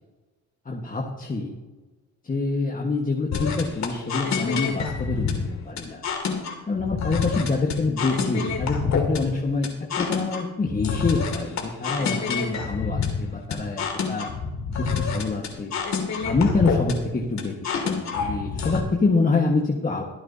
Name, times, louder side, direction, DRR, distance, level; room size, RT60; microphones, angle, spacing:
voice 1, 0.6-1.5 2.2-6.0 6.7-9.7 10.0-14.3 14.7-15.7 16.2-17.5 17.8-20.0, left 3 dB, 30° left, -1 dB, 1.5 m, -26 dB
sound 1, 3.3-18.8, left 5 dB, 65° left, 2.5 m, -27 dB
23.0 x 8.9 x 2.8 m, 1.2 s
cardioid pair, 90°, 30 cm